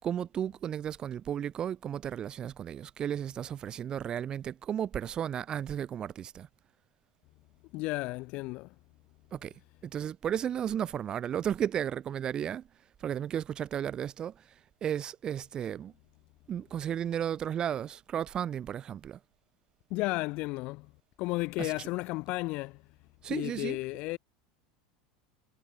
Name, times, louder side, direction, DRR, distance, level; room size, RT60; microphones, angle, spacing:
voice 1, 0.0-6.5 9.3-9.5 9.8-12.7 13.0-14.5 14.8-15.9 16.5-19.2 21.6-21.9 23.2-23.8, right 9 dB, 35° right, 4.6 m, -34 dB
voice 2, 7.7-8.7 19.9-20.9 21.2-22.8 23.3-24.2, left 22 dB, 55° left, 4.7 m, -33 dB
hypercardioid pair, 105°, 2 cm